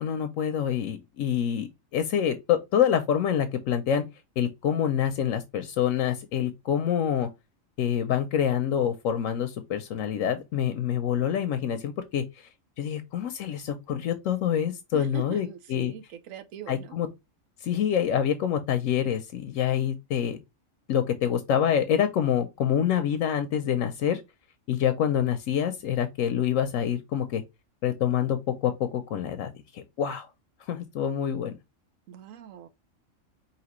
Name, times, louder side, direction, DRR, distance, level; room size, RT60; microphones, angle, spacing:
voice 1, 0.0-4.1 4.4-7.3 7.8-12.5 12.8-15.9 16.7-17.1 17.6-20.4 20.9-24.2 24.7-27.4 27.8-30.3 30.6-31.5, left 9 dB, 80° left, 1.0 m, -26 dB
voice 2, 14.9-16.9 32.1-32.7, right 10 dB, 85° right, 1.1 m, -42 dB
4.9 x 2.9 x 3.0 m
omnidirectional pair, 1.4 m